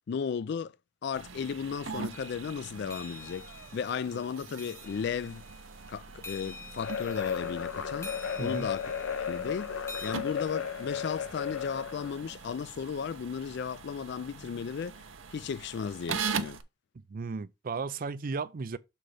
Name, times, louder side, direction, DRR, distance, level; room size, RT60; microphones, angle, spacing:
voice 1, 0.1-0.8 1.0-5.4 5.9-8.9 9.3-16.6, left 6 dB, 60° left, 0.3 m, -35 dB
sound 1, 1.1-16.6, right 5 dB, 75° right, 0.7 m, -42 dB
sound 2, 2.1-10.1, left 4 dB, 15° left, 0.8 m, -48 dB
sound 3, 6.8-12.2, left 7 dB, 80° left, 0.7 m, -35 dB
voice 2, 8.4-8.7 16.9-18.8, right 4 dB, 45° right, 0.4 m, -35 dB
6.4 x 4.3 x 4.8 m
head